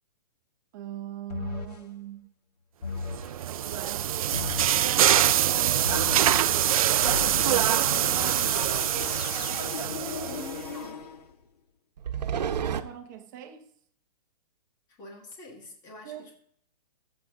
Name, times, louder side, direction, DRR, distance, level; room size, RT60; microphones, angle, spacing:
voice 1, 0.7-2.3 3.7-7.4 12.6-13.7 16.0-16.3, right 11 dB, 30° right, 0.9 m, -42 dB
sound 1, 1.3-1.9 2.8-3.4 4.3-4.9 5.8-6.4 7.0-11.4, left 5 dB, 75° left, 1.5 m, -36 dB
sound 2, 3.1-10.7, right 11 dB, 60° right, 0.4 m, -24 dB
sound 3, 7.8-8.7 12.0-12.8, right 8 dB, 90° right, 0.9 m, -31 dB
voice 2, 10.3-11.0 14.9-16.4, left 3 dB, 15° left, 1.7 m, -45 dB
14.5 x 7.1 x 3.7 m
hypercardioid pair, 165°, 21 cm